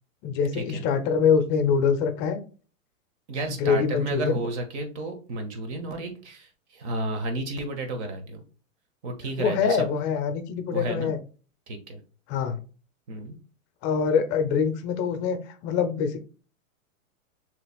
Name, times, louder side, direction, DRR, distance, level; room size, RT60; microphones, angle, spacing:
voice 1, 0.2-2.4 3.5-4.4 9.4-11.2 12.3-12.6 13.8-16.2, left 6 dB, 25° left, 8 dB, 0.6 m, -24 dB
voice 2, 3.3-8.4 9.0-9.8 10.7-11.1 11.7-12.0 13.1-13.4, right 2 dB, 55° right, 5 dB, 1.6 m, -32 dB
6.5 x 3.3 x 2.3 m, 0.37 s
hypercardioid pair, 135°, 41 cm